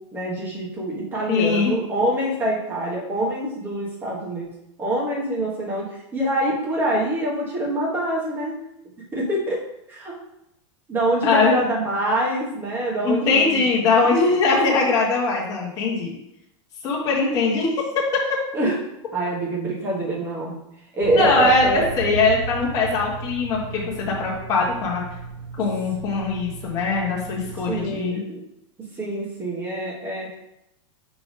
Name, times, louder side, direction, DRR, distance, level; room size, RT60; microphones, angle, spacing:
voice 1, 0.1-4.5 4.8-8.6 9.1-9.6 9.9-10.2 10.9-13.7 18.5-18.8 19.1-20.6 20.9-21.8 27.7-28.4 29.0-30.4, right 1 dB, 15° right, -3 dB, 1.3 m, -25 dB
voice 2, 1.3-1.7 11.2-11.5 13.0-16.2 16.8-18.2 21.1-25.0 25.6-28.2, left 3 dB, 20° left, -4 dB, 1.4 m, -21 dB
sound 1, 21.0-27.9, right 3 dB, 45° right, 1.5 m, -35 dB
5.1 x 3.5 x 5.4 m, 0.85 s
supercardioid pair, 175°, 16 cm